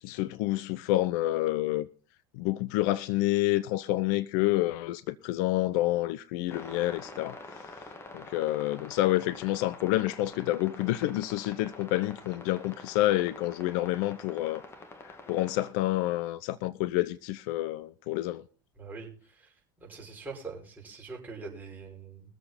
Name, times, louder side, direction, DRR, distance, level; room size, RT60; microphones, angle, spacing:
voice 1, 0.0-1.9 2.3-7.4 8.1-14.6 15.0-18.4, left 16 dB, 55° left, 0.5 m, -28 dB
sound 1, 6.5-15.7, left 2 dB, 20° left, 1.8 m, -47 dB
voice 2, 18.8-19.1 19.8-22.2, right 4 dB, 15° right, 5.8 m, -42 dB
22.0 x 7.6 x 4.1 m
figure-of-eight pair, 75°, 11 cm